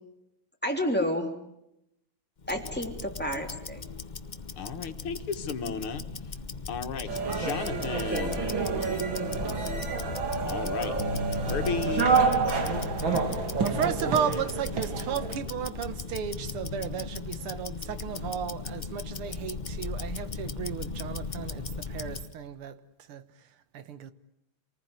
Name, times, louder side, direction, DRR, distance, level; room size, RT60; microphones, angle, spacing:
voice 1, 0.6-1.3 2.5-3.8, equal, 5° left, 3.1 m, -30 dB
Tick-tock, 2.4-22.3, left 4 dB, 45° left, 0.6 m, -37 dB
voice 2, 4.6-6.0 6.7-8.4 10.4-11.0 11.5-12.1, left 5 dB, 80° left, 2.4 m, -34 dB
sound 1, 7.1-15.3, right 5 dB, 65° right, 3.1 m, -29 dB
Bass guitar, 11.0-17.2, equal, 40° right, 1.9 m, -40 dB
voice 3, 13.2-22.8 23.1-23.2 23.7-24.1, right 8 dB, 90° right, 2.1 m, -34 dB
27.0 x 19.5 x 9.5 m
omnidirectional pair, 2.3 m